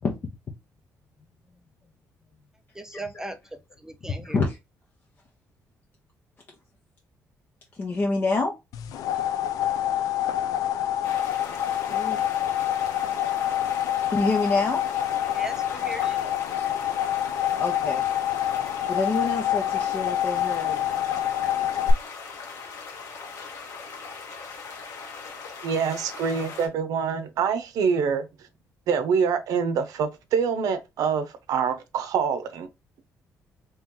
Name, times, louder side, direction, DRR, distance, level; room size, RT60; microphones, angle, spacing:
voice 1, 2.7-3.4 3.8-4.4 15.3-16.3, right 2 dB, 10° right, 0.4 m, -38 dB
voice 2, 4.2-4.6 7.7-8.5 11.9-12.2 14.1-14.8 16.6-16.7 17.5-18.0 18.9-20.8, left 3 dB, 35° left, 0.7 m, -27 dB
sound 1, 8.7-21.9, left 11 dB, 85° left, 0.4 m, -26 dB
sound 2, 11.0-26.7, left 4 dB, 60° left, 1.3 m, -40 dB
voice 3, 25.6-28.3 28.9-32.7, right 6 dB, 80° right, 0.6 m, -25 dB
3.0 x 3.0 x 3.6 m
cardioid pair, 150°, 6 cm